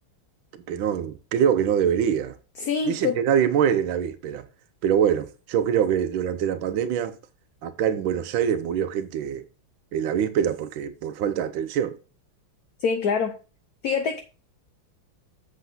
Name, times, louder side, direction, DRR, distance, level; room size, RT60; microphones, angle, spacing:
voice 1, 0.7-2.3 2.9-4.4 4.8-7.2 7.6-9.4 9.9-12.0, right 8 dB, 75° right, 1.5 m, -24 dB
voice 2, 2.6-3.2 12.8-13.4 13.8-14.2, left 6 dB, 60° left, 1.1 m, -25 dB
8.0 x 6.5 x 3.8 m
omnidirectional pair, 2.2 m